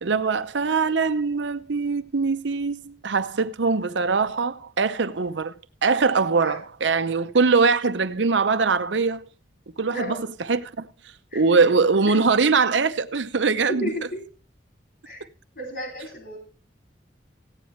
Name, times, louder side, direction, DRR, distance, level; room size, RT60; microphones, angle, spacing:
voice 1, 0.0-5.5 5.8-9.3 9.8-10.2 10.5-10.9 11.3-13.9, right 4 dB, 85° right, 0.7 m, -22 dB
voice 2, 9.9-10.3 11.3-11.7 12.0-12.2 13.5-14.3 15.0-15.2 15.6-16.4, equal, 60° left, 2.8 m, -33 dB
15.5 x 9.6 x 3.2 m
head